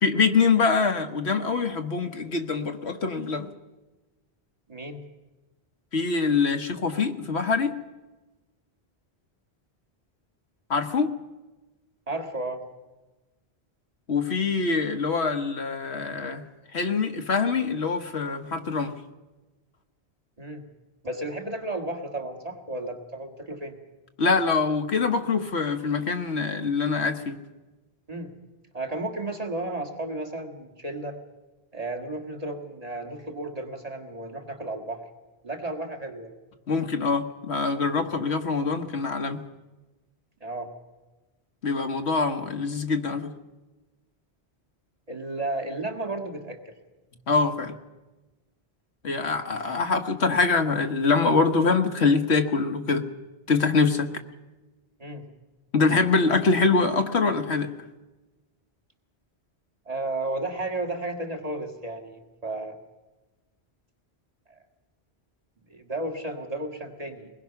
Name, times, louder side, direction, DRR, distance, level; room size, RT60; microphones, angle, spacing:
voice 1, 0.0-3.5 5.9-7.7 10.7-11.1 14.1-16.4 16.7-18.9 24.2-27.4 36.7-39.4 41.6-43.3 47.3-47.8 49.0-53.1 53.5-54.1 55.7-57.7, left 4 dB, 75° left, 7 dB, 1.5 m, -24 dB
voice 2, 4.7-5.1 12.1-12.6 20.4-20.6 21.0-23.8 28.1-28.3 28.7-31.2 31.7-35.0 35.4-36.3 40.4-40.7 45.1-46.7 55.0-55.3 59.9-62.8 64.5-64.6 65.7-67.3, right 2 dB, 35° right, 3 dB, 2.0 m, -33 dB
23.0 x 20.5 x 5.9 m, 1.2 s
omnidirectional pair, 1.1 m